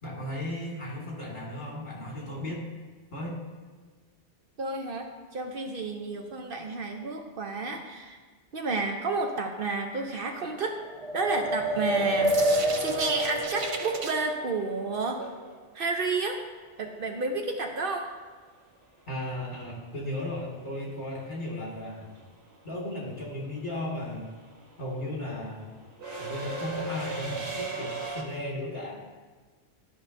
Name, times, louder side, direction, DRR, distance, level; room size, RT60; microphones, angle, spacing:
voice 1, 0.0-2.7 3.1-3.4 19.1-22.1 22.6-24.3 24.8-25.7 26.2-29.0, left 1 dB, 45° left, -4 dB, 2.2 m, -35 dB
voice 2, 4.6-8.2 8.5-10.8 11.1-12.4 12.8-15.2 15.7-16.4 16.8-18.1, right 3 dB, 60° right, 3 dB, 0.8 m, -31 dB
sound 1, 10.8-14.2, right 1 dB, 40° right, 0.5 m, -27 dB
sound 2, 12.0-16.1 18.5-18.6 19.9-20.2 20.4-28.2, right 2 dB, 75° right, 1.5 m, -38 dB
12.5 x 5.6 x 2.6 m, 1.5 s
omnidirectional pair, 1.1 m